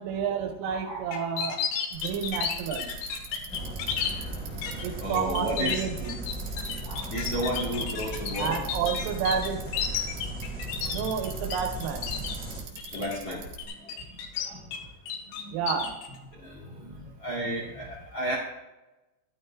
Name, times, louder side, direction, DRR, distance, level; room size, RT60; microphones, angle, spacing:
voice 1, 0.0-1.6 1.9-2.9 4.8-6.2 8.4-9.6 10.9-12.1 15.5-16.0, right 7 dB, 80° right, 4 dB, 3.6 m, -30 dB
voice 2, 0.7-1.2 5.0-5.9 6.8-8.6 12.7-13.5 13.8-14.8 15.3-15.6 16.3-18.3, right 1 dB, 45° left, -5 dB, 2.2 m, -34 dB
sound 1, 1.1-4.1 4.6-4.8 5.2-11.6 11.8-12.4 12.8-13.2 13.6-14.8 15.1-16.1, left 8 dB, 80° left, 3.5 m, -32 dB
Bicycle, 1.9-13.7, right 3 dB, 60° right, 2.9 m, -43 dB
sound 2, 3.5-12.6, right 1 dB, 5° right, 2.1 m, -37 dB
13.5 x 12.5 x 2.3 m, 1.0 s
omnidirectional pair, 5.9 m